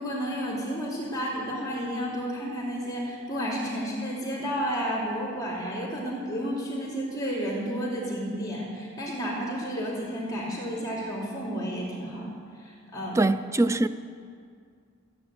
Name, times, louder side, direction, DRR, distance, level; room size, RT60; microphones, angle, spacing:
voice 1, 0.0-12.3 12.6-13.2, equal, 15° left, 3.3 m, -31 dB
voice 2, 13.2-13.9, right 2 dB, 15° right, 0.4 m, -23 dB
15.0 x 9.2 x 7.9 m
head